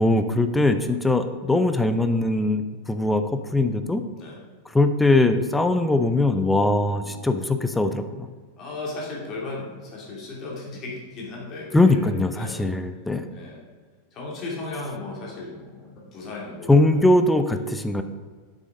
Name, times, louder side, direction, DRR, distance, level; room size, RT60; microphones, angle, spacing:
voice 1, 0.0-3.2 3.5-4.0 4.7-8.1 11.7-13.3 16.7-18.0, left 2 dB, 5° left, 9 dB, 0.5 m, -21 dB
voice 2, 6.8-7.4 8.6-12.7 13.3-13.6 14.1-17.0, left 2 dB, 35° left, -3 dB, 2.8 m, -36 dB
7.6 x 6.3 x 5.0 m, 1.5 s
figure-of-eight pair, 90°, 0 cm